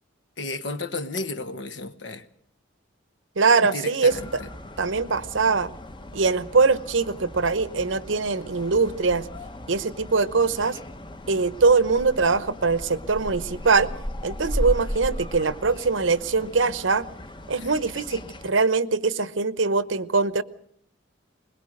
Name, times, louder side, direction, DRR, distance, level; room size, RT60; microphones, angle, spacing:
voice 1, 0.4-2.3 3.7-4.5 17.6-17.7, left 3 dB, 70° left, 11 dB, 1.3 m, -33 dB
voice 2, 3.4-4.1 4.8-5.7 6.1-9.3 9.7-10.8 11.3-13.9 14.2-17.1 17.5-20.4, right 4 dB, 85° right, 15 dB, 0.9 m, -22 dB
sound 1, 4.1-18.5, left 1 dB, 25° left, 1.0 m, -36 dB
21.5 x 21.5 x 6.5 m, 0.68 s
head